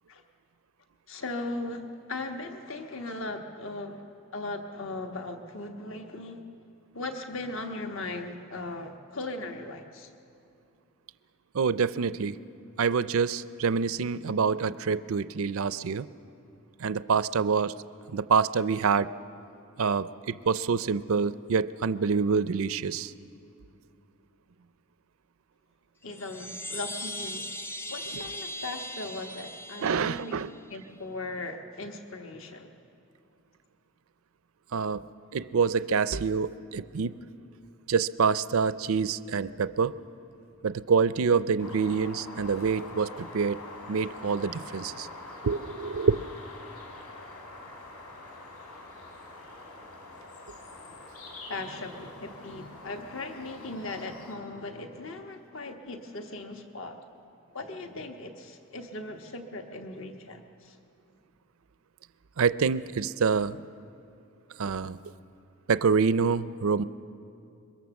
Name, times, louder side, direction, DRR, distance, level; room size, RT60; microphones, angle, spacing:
voice 1, 1.1-4.0 4.3-6.4 6.9-10.1 26.0-27.5 27.9-30.3 30.7-32.7 50.9-51.0 51.5-57.0 57.5-60.8, left 2 dB, 60° left, 4 dB, 1.3 m, -38 dB
voice 2, 11.5-12.4 12.8-16.1 16.8-17.7 18.1-19.1 19.8-23.1 29.8-30.5 34.7-35.0 35.3-37.2 37.9-39.9 40.6-43.6 43.9-45.1 45.4-46.2 62.4-63.6 64.6-65.0 65.7-66.8, right 5 dB, 70° right, 15 dB, 0.5 m, -26 dB
Chime, 26.0-30.7, left 1 dB, 10° left, 0.4 m, -39 dB
sound 1, 41.6-54.4, left 2 dB, 80° left, 4.6 m, -45 dB
24.0 x 22.5 x 7.1 m, 2.6 s
head